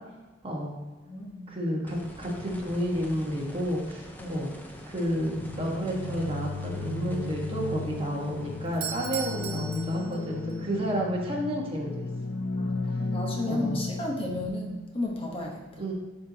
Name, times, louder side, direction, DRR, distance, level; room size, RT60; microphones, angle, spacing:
voice 1, 0.4-0.7 1.5-4.5 4.9-12.1 13.5-13.8 15.8-15.9, equal, 30° right, -2 dB, 1.3 m, -31 dB
voice 2, 1.0-1.5 4.2-4.4 10.0-10.1 12.6-15.8, left 2 dB, 30° left, 0 dB, 0.9 m, -33 dB
sound 1, 1.9-12.8 15.0-15.1, equal, 10° left, 0.6 m, -47 dB
sound 2, 5.4-14.5, left 2 dB, 75° left, 0.5 m, -34 dB
Doorbell, 8.7-10.6, right 7 dB, 55° right, 0.7 m, -37 dB
11.5 x 4.3 x 2.8 m, 1.3 s
head